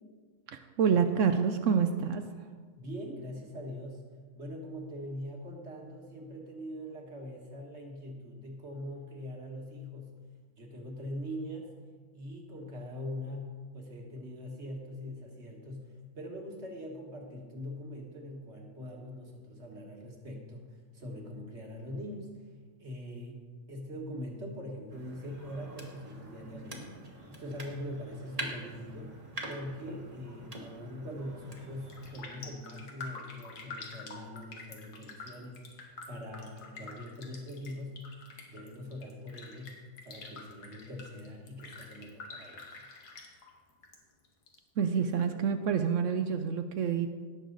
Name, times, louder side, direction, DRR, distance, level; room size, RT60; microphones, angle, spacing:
voice 1, 0.5-2.3 44.8-47.1, right 7 dB, 65° right, 8 dB, 0.8 m, -27 dB
voice 2, 2.8-4.0 4.3-10.2 10.6-11.7 12.1-22.4 22.8-23.4 23.7-29.2 29.5-38.0 38.5-39.8 40.0-42.8, left 1 dB, 45° right, 1 dB, 1.8 m, -42 dB
sound 1, 24.9-32.3, right 1 dB, 25° right, 1.3 m, -45 dB
Raindrop, 31.4-31.6 31.9-44.0 44.2-45.2 45.6-45.7, left 3 dB, 80° left, 1.9 m, -47 dB
17.5 x 6.6 x 4.0 m, 1.5 s
omnidirectional pair, 1.7 m